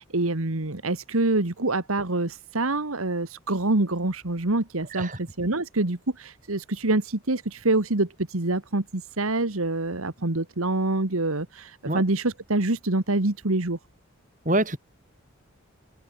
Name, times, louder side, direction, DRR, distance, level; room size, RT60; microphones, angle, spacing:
voice 1, 0.0-13.8, right 2 dB, 85° right, 1.9 m, -26 dB
voice 2, 14.4-14.8, right 1 dB, 35° right, 6.8 m, -25 dB
open air
head